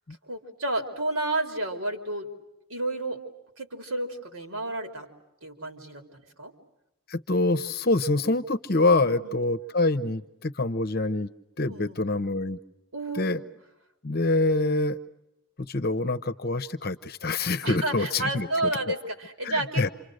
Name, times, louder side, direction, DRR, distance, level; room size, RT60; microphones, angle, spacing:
voice 1, 0.2-2.3 2.7-3.2 3.6-5.1 5.4-6.5 9.0-9.4 11.7-12.0 12.9-13.5 17.6-19.9, right 2 dB, 70° right, 5 dB, 3.7 m, -31 dB
voice 2, 7.1-11.3 11.6-12.6 13.1-13.4 14.0-15.0 15.6-18.5 18.9-19.0 19.4-19.9, left 2 dB, 45° left, 12 dB, 0.9 m, -25 dB
28.5 x 27.5 x 6.5 m, 0.88 s
head